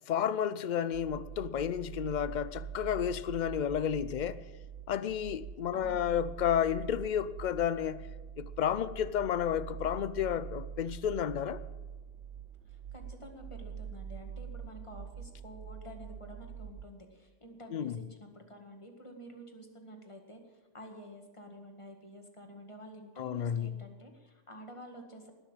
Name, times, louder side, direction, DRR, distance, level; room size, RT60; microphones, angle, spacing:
voice 1, 0.1-4.4 4.9-8.0 8.4-11.6 17.7-18.0 23.2-23.8, left 9 dB, 55° left, 0.5 m, -31 dB
sound 1, 0.9-16.8, right 7 dB, 70° right, 1.1 m, -44 dB
voice 2, 5.7-6.2 12.7-25.3, equal, 25° left, 1.9 m, -50 dB
19.5 x 6.6 x 8.9 m
omnidirectional pair, 1.3 m